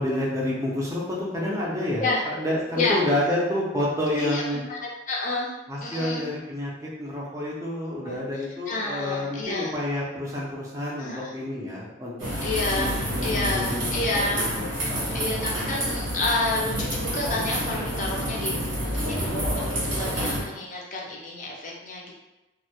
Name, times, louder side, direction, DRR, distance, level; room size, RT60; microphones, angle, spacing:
voice 1, 0.0-4.6 5.7-12.3 12.8-14.0 14.3-15.5 19.0-19.2, left 1 dB, 15° right, -5 dB, 0.5 m, -29 dB
voice 2, 4.1-5.5 5.8-6.3 8.0-9.7 11.0-11.3 12.4-14.4 14.7-22.1, left 2 dB, 40° left, -2 dB, 0.4 m, -30 dB
sound 1, 12.2-20.4, equal, 85° right, 1.1 m, -28 dB
2.2 x 2.0 x 2.8 m, 1.0 s
head